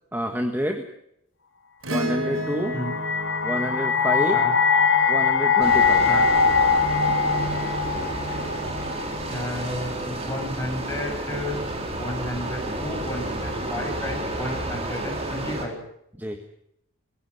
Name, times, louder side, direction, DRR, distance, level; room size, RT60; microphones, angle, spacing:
voice 1, 0.1-0.9 1.9-2.7 3.4-4.4 5.1-6.1 16.2-16.4, equal, 10° right, 5 dB, 1.5 m, -28 dB
Acoustic guitar / Strum, 1.8-6.4 8.3-8.4, right 1 dB, 70° right, 3.5 m, -33 dB
sound 1, 2.5-9.6, left 5 dB, 60° left, 2.2 m, -22 dB
sound 2, 5.6-15.7, right 1 dB, 30° right, 4.2 m, -31 dB
voice 2, 9.3-11.6 12.0-15.8, left 1 dB, 15° left, 2 dB, 6.2 m, -32 dB
22.5 x 16.0 x 9.4 m, 0.76 s
head